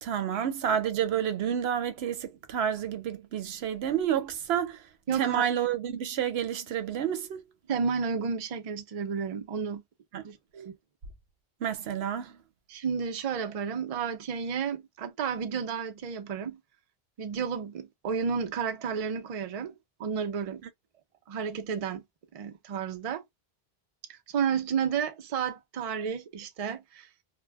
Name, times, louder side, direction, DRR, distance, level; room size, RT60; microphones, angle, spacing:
voice 1, 0.0-4.8 5.2-7.4 10.1-10.2 11.6-12.4 20.6-20.7, right 9 dB, 85° right, 0.8 m, -29 dB
voice 2, 5.1-5.5 7.7-9.8 10.2-10.7 12.7-16.6 17.2-19.7 20.0-20.6 21.3-22.0 22.3-23.2 24.1-27.1, right 6 dB, 45° right, 0.5 m, -32 dB
2.3 x 2.1 x 3.2 m
omnidirectional pair, 1.0 m